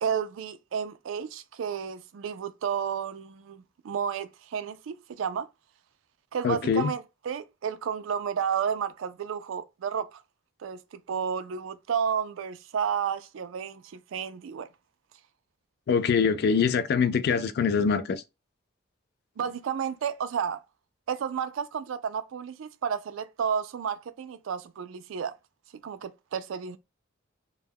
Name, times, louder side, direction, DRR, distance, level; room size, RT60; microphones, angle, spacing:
voice 1, 0.0-5.5 6.3-10.2 10.6-14.7 19.4-20.6 21.1-25.3 25.8-26.8, right 7 dB, 80° right, 0.3 m, -32 dB
voice 2, 6.4-6.9 15.9-18.2, left 6 dB, 55° left, 0.3 m, -24 dB
2.2 x 2.1 x 3.3 m
head